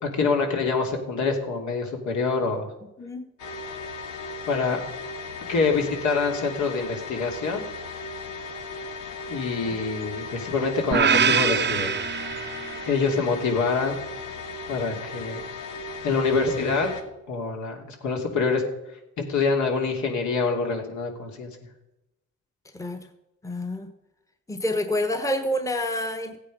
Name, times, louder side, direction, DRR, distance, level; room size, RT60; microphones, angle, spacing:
voice 1, 0.0-2.7 4.5-4.8 5.5-7.6 9.3-11.9 12.9-14.0 14.7-15.4 16.0-16.9 17.3-18.6 19.2-21.5, left 4 dB, 70° left, 2 dB, 3.1 m, -25 dB
voice 2, 3.0-3.3 22.7-23.1 23.4-23.9 24.5-26.4, left 1 dB, 10° left, 8 dB, 1.2 m, -28 dB
sound 1, 3.4-17.0, left 3 dB, 90° left, 1.8 m, -36 dB
sound 2, 10.9-13.1, right 7 dB, 35° right, 0.7 m, -23 dB
15.5 x 8.9 x 5.4 m, 0.92 s
cardioid pair, 90°, 30 cm